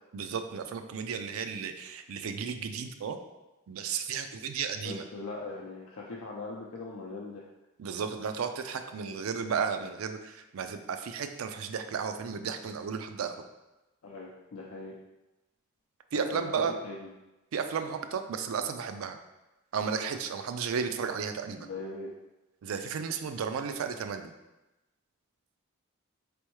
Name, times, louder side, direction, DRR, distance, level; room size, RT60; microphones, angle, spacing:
voice 1, 0.1-3.2 3.7-5.0 7.8-13.4 16.1-16.8 17.5-19.2 19.7-21.7 22.6-24.3, right 6 dB, 90° right, 8 dB, 0.4 m, -33 dB
voice 2, 4.8-7.5 14.0-15.0 16.1-17.1 21.6-22.1, left 3 dB, 85° left, -3 dB, 0.5 m, -40 dB
4.3 x 3.4 x 3.1 m, 1.0 s
head